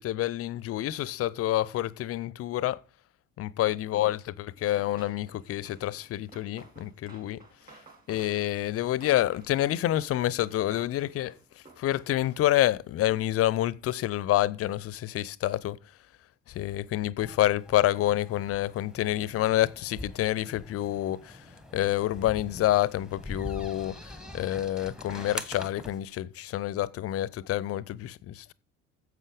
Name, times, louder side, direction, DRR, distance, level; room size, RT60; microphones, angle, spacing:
voice 1, 0.0-2.8 3.4-7.4 8.1-11.3 11.8-15.8 16.5-21.4 21.7-28.5, left 14 dB, 40° left, 0.7 m, -28 dB
Run, 4.6-12.7, right 3 dB, 25° right, 3.9 m, -55 dB
sound 1, 17.2-26.1, left 1 dB, ahead, 1.2 m, -43 dB
11.0 x 7.8 x 5.1 m
figure-of-eight pair, 55°, 37 cm